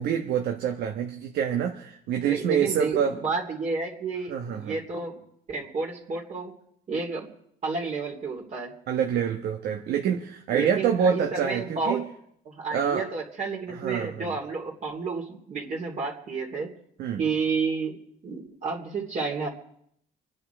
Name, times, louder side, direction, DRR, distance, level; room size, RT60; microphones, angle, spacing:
voice 1, 0.0-3.2 4.3-4.8 8.9-12.0 12.7-13.0 13.7-14.3 17.0-17.2, right 8 dB, 75° right, 3 dB, 1.4 m, -26 dB
voice 2, 2.2-5.2 5.5-6.6 6.9-7.3 7.6-8.7 10.5-12.0 12.4-16.7 17.2-19.5, right 4 dB, 45° right, -1 dB, 3.2 m, -31 dB
26.5 x 9.8 x 4.6 m, 0.70 s
cardioid pair, 110°, 17 cm